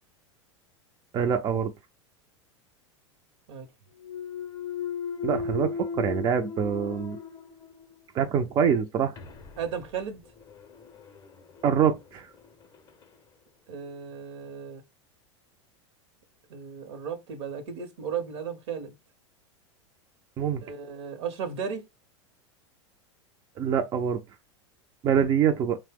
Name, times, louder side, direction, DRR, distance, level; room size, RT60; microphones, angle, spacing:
voice 1, 1.1-1.7 5.2-7.2 8.1-9.2 11.6-12.3 20.4-20.6 23.6-24.2 25.0-25.8, right 7 dB, 30° right, 0.3 m, -25 dB
Thump thud, 4.0-8.0 8.5-13.2, left 5 dB, 25° left, 0.5 m, -38 dB
voice 2, 9.6-10.2 13.7-14.8 16.5-18.9 20.6-21.8, right 7 dB, 65° right, 0.8 m, -35 dB
2.7 x 2.0 x 3.3 m
hypercardioid pair, 95°, 16 cm